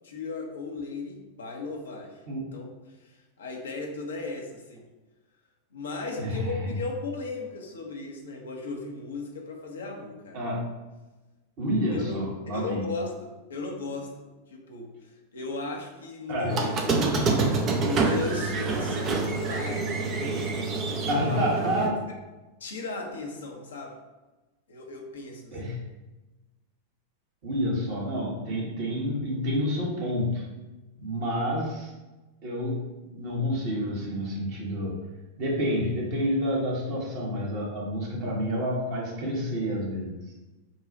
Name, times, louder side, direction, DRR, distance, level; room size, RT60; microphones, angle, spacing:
voice 1, 0.0-2.2 2.5-2.7 3.0-4.8 5.7-10.4 11.9-17.3 17.9-21.9 22.6-24.0 24.7-25.6, left 3 dB, 65° left, 0 dB, 0.9 m, -36 dB
voice 2, 6.2-6.7 10.3-10.7 11.6-12.8 16.3-16.6 21.1-22.0 25.5-25.8 27.4-30.5 31.0-31.9 32.4-35.1 35.4-40.2, equal, 45° right, -3 dB, 1.4 m, -29 dB
Squeak, 16.5-21.9, right 3 dB, 30° right, 0.7 m, -27 dB
5.4 x 2.4 x 4.0 m, 1.1 s
figure-of-eight pair, 90°, 0 cm